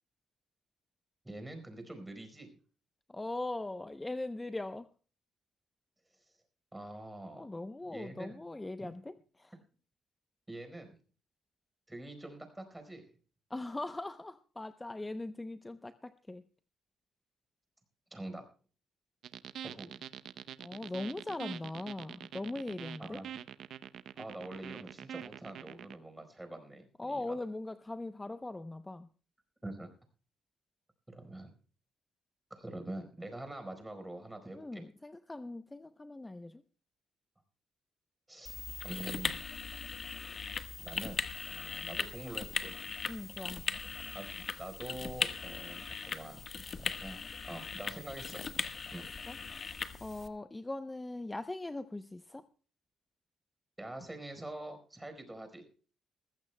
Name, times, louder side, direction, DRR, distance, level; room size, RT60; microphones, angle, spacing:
voice 1, 1.2-2.5 6.7-7.5 7.9-8.4 10.5-11.0 11.9-13.1 18.1-18.5 19.6-20.0 23.0-23.3 24.2-27.4 29.6-29.9 31.1-31.5 32.5-34.8 38.3-38.5 38.8-39.4 40.8-42.7 43.6-43.9 44.1-46.5 46.8-47.2 47.5-48.4 48.9-49.1 53.8-55.6, right 1 dB, 10° right, 7 dB, 4.4 m, -45 dB
voice 2, 3.1-4.9 7.4-9.6 13.5-16.5 20.6-23.2 27.0-29.1 34.5-36.6 43.1-43.7 49.3-52.5, left 2 dB, 15° left, 11 dB, 0.7 m, -40 dB
sound 1, 19.2-26.0, right 9 dB, 70° right, 0.7 m, -45 dB
sound 2, 38.5-50.3, left 5 dB, 40° left, 1.3 m, -39 dB
21.0 x 15.0 x 2.2 m, 0.40 s
cardioid pair, 90°, 0 cm